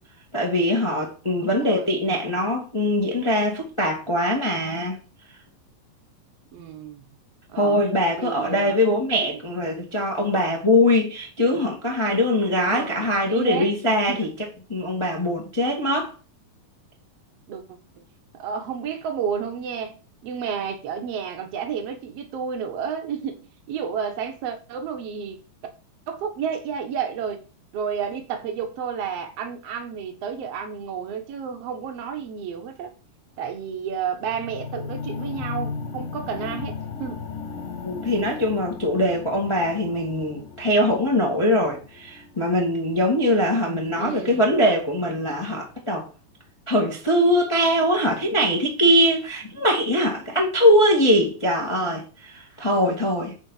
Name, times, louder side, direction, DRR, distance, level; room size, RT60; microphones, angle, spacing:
voice 1, 0.3-5.0 7.5-14.3 14.7-16.1 37.8-46.1 46.7-53.3, left 1 dB, 15° left, 1.0 m, -22 dB
voice 2, 1.4-1.9 6.5-7.0 7.5-7.8 8.2-9.0 9.3-9.4 12.5-13.7 14.1-14.3 17.5-17.6 18.3-19.9 20.2-25.4 26.1-27.4 27.7-32.9 33.4-37.3 44.0-44.5, right 7 dB, 55° right, 2.0 m, -31 dB
sound 1, 34.2-44.3 45.0-45.1, left 5 dB, 65° left, 1.4 m, -36 dB
9.9 x 4.0 x 5.6 m
omnidirectional pair, 4.2 m